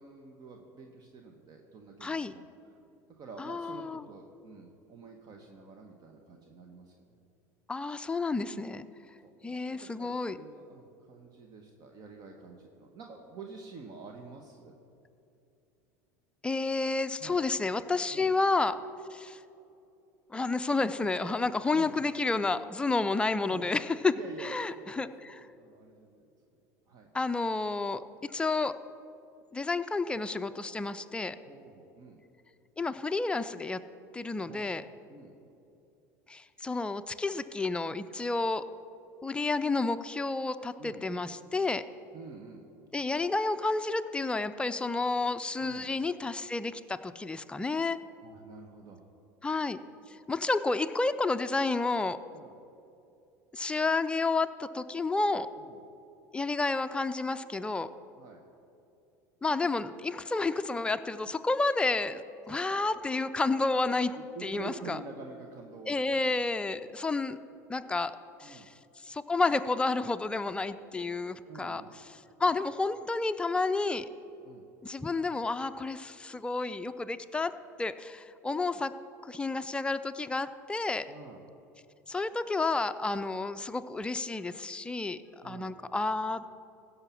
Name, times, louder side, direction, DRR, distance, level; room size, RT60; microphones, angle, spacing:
voice 1, 0.0-2.4 2.7-2.8 3.1-7.1 9.2-14.7 17.2-17.4 18.1-18.3 21.7-22.1 23.5-23.6 24.1-25.1 25.6-26.3 26.9-27.1 31.5-32.2 34.4-34.7 35.1-35.3 40.8-41.0 42.1-42.7 45.6-45.9 48.2-49.0 52.3-52.6 55.6-55.8 58.2-58.4 62.5-62.9 63.9-66.4 68.4-68.7 71.4-71.9 72.4-72.5 74.4-74.6 81.1-81.4 85.4-85.7, right 4 dB, 45° right, 3 dB, 1.2 m, -48 dB
voice 2, 2.0-2.3 3.4-4.1 7.7-8.8 9.4-10.4 16.4-18.8 19.1-19.4 20.3-25.5 27.1-28.8 29.5-31.4 32.8-33.8 34.1-34.8 36.3-38.6 39.2-41.8 42.9-48.0 49.4-49.8 50.3-52.2 53.5-55.5 56.3-57.9 59.4-64.2 64.4-65.0 65.9-67.4 67.7-68.1 68.4-68.7 69.0-74.1 74.8-77.5 77.8-78.9 79.2-81.1 82.1-85.2 85.4-86.5, left 3 dB, 10° left, 10 dB, 0.5 m, -30 dB
15.5 x 5.7 x 7.1 m, 2.7 s
supercardioid pair, 95°, 9 cm